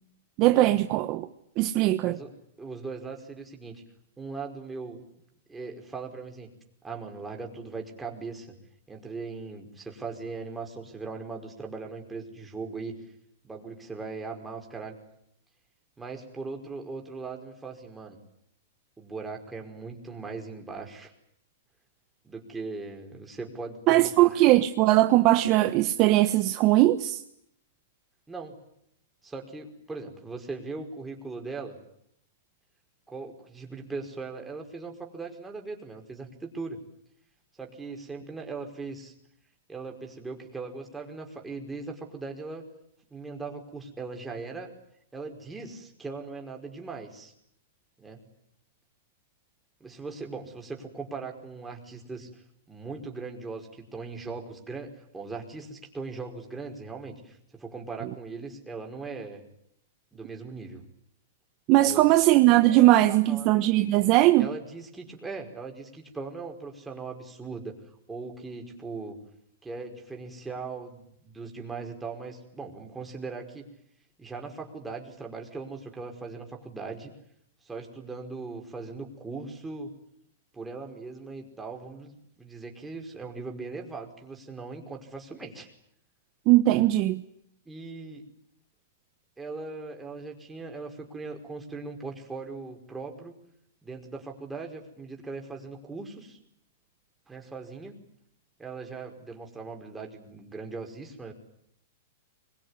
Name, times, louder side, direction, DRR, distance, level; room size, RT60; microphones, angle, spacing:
voice 1, 0.4-1.3 1.6-2.2 23.9-27.2 61.7-64.5 86.5-87.2, right 16 dB, 40° right, 1.3 m, -20 dB
voice 2, 2.0-3.8 4.2-5.0 5.5-6.5 6.8-8.5 8.9-12.9 13.4-14.9 16.0-18.2 19.0-21.1 22.2-24.4 28.3-28.5 29.2-31.8 33.1-36.8 37.6-39.1 39.7-42.6 43.1-44.7 45.1-47.3 48.0-48.2 49.8-52.4 52.7-59.4 60.1-60.8 61.7-62.0 62.7-62.8 63.1-63.5 64.4-67.7 68.1-69.2 69.6-73.7 74.2-77.1 77.6-79.9 80.5-85.7 87.6-88.2 89.4-93.3 93.8-96.4 97.3-98.0 98.6-101.3, right 4 dB, 10° right, 5.0 m, -39 dB
24.5 x 23.0 x 9.8 m
hypercardioid pair, 145°, 0 cm